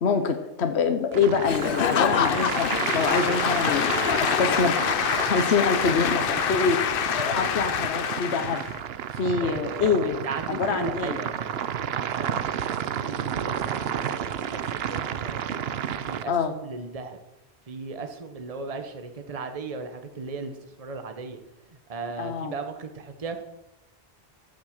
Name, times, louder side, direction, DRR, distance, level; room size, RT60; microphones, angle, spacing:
voice 1, 0.0-4.8 5.2-6.8 7.1-8.6 9.2-10.2 10.5-11.2 16.3-16.5 22.2-22.5, left 5 dB, 85° left, 7 dB, 1.2 m, -25 dB
sound 1, 1.1-16.2, right 9 dB, 75° right, 0.9 m, -31 dB
Applause / Crowd, 1.4-8.8, left 9 dB, 65° left, 0.8 m, -26 dB
voice 2, 9.4-15.4 16.0-17.2 17.7-21.4 21.7-23.4, right 4 dB, 35° right, 7 dB, 1.1 m, -37 dB
14.5 x 6.5 x 6.5 m, 0.94 s
omnidirectional pair, 1.1 m